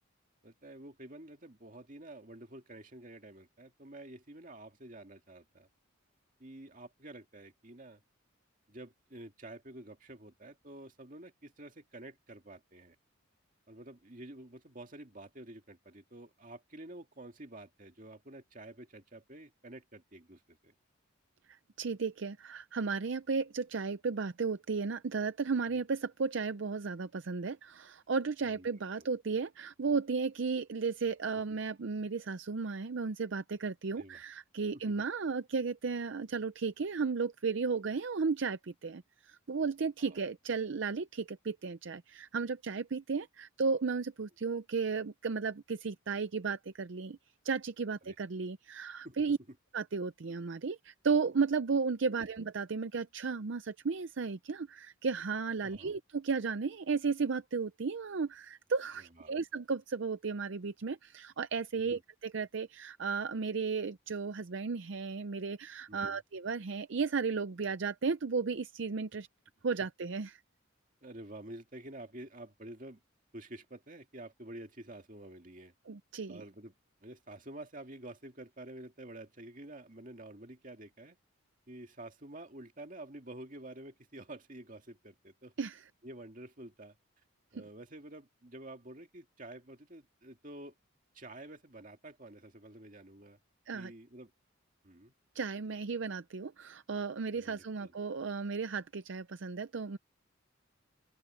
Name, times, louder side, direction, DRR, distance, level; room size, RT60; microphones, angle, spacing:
voice 1, 0.4-5.7 6.4-8.0 8.7-13.0 13.7-20.7 25.6-25.8 28.4-28.7 29.0-29.1 31.5-31.6 34.0-34.2 34.7-34.8 40.0-40.2 48.0-48.2 49.0-49.2 52.1-52.3 55.6-56.0 59.1-59.4 61.8-62.0 65.9-66.2 71.0-73.0 73.3-75.7 76.3-76.7 77.0-81.2 81.7-85.5 86.0-87.0 87.5-90.7 91.1-93.4 93.7-94.3 94.8-95.1 97.3-97.9, right 1 dB, 40° right, 2.3 m, -49 dB
voice 2, 21.8-47.2 47.4-49.4 49.7-69.3 69.6-70.4 75.9-76.4 85.6-85.8 87.6-87.7 93.7-93.9 95.3-100.0, right 5 dB, 60° right, 0.5 m, -34 dB
open air
head